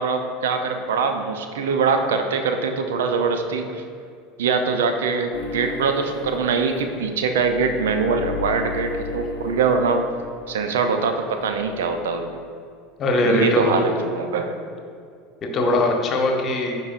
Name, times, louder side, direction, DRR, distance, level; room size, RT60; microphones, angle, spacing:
voice 1, 0.0-3.8 4.4-10.0 10.5-12.4 13.2-14.6, right 5 dB, 75° right, 6 dB, 0.5 m, -23 dB
sound 1, 5.3-11.0 11.3-12.5, left 7 dB, 60° left, 0.7 m, -36 dB
voice 2, 13.0-13.9 15.4-16.8, left 2 dB, 40° left, 2 dB, 1.1 m, -21 dB
10.0 x 4.7 x 2.5 m, 2.3 s
hypercardioid pair, 75°, 0 cm